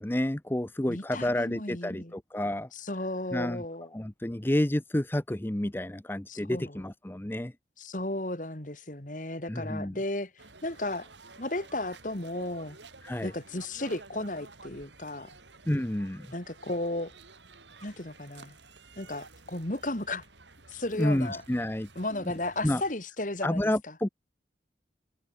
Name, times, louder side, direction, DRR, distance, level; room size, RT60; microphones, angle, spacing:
voice 1, 0.0-2.7 3.3-3.6 3.9-7.5 9.5-10.0 13.0-13.3 15.7-16.3 21.0-21.9 22.6-22.8 23.4-24.1, left 1 dB, 10° left, 0.6 m, -29 dB
voice 2, 0.9-2.1 2.7-3.9 6.3-6.8 7.8-10.3 10.6-11.1 11.4-12.8 13.2-15.3 16.3-17.1 17.8-18.6 19.0-20.2 20.7-21.4 22.0-23.6, left 2 dB, 45° left, 2.4 m, -34 dB
sound 1, 10.4-22.9, right 3 dB, 90° right, 7.5 m, -52 dB
head